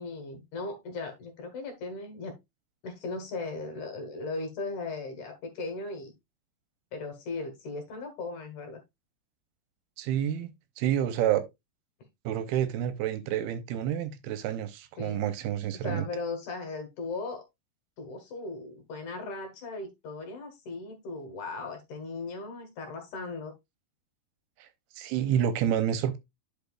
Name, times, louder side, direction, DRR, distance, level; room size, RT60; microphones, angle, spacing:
voice 1, 0.0-2.3 2.8-6.1 6.9-8.8 15.0-15.3 15.8-17.4 18.0-23.5, left 3 dB, 60° left, 2.5 m, -37 dB
voice 2, 10.0-11.4 12.3-16.1 24.6-24.7 25.0-26.2, right 10 dB, 80° right, 2.6 m, -29 dB
10.5 x 5.6 x 2.3 m
omnidirectional pair, 4.6 m